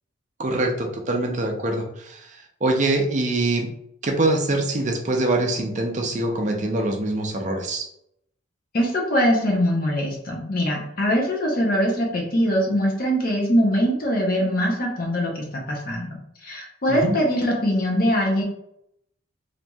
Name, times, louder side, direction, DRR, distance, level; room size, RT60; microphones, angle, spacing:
voice 1, 0.4-3.7 4.0-7.9 16.9-17.2, right 2 dB, 35° right, 2 dB, 0.4 m, -24 dB
voice 2, 8.7-18.4, equal, 45° left, -1 dB, 0.6 m, -22 dB
3.0 x 2.5 x 2.2 m, 0.75 s
head